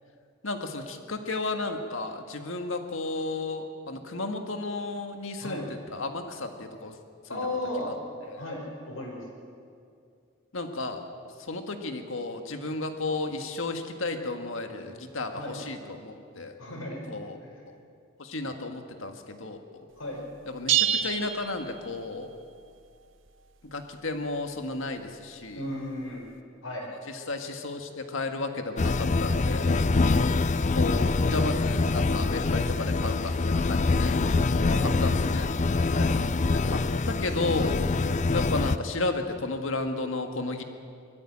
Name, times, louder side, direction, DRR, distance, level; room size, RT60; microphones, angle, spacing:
voice 1, 0.4-5.6 5.9-7.0 7.3-7.4 7.9-8.0 8.3-8.4 10.5-11.0 11.4-16.5 17.1-17.4 17.7-17.8 18.2-19.8 20.5-22.3 23.6-25.6 27.1-29.8 30.7-34.2 35.0-35.5 36.5-36.8 37.1-37.9 38.3-40.6, left 2 dB, 70° left, 5 dB, 1.8 m, -33 dB
voice 2, 7.3-7.9 8.4-9.2 15.3-15.6 16.6-17.0 17.4-17.6 20.0-20.2 25.6-26.3 26.6-26.9 34.6-35.1 35.9-36.2, left 1 dB, 90° left, 0 dB, 5.3 m, -35 dB
sound 1, 20.7-22.3, right 10 dB, 70° right, 1.1 m, -27 dB
sound 2, 28.8-38.8, left 3 dB, 35° left, 0.5 m, -25 dB
22.0 x 14.0 x 8.8 m, 2.4 s
head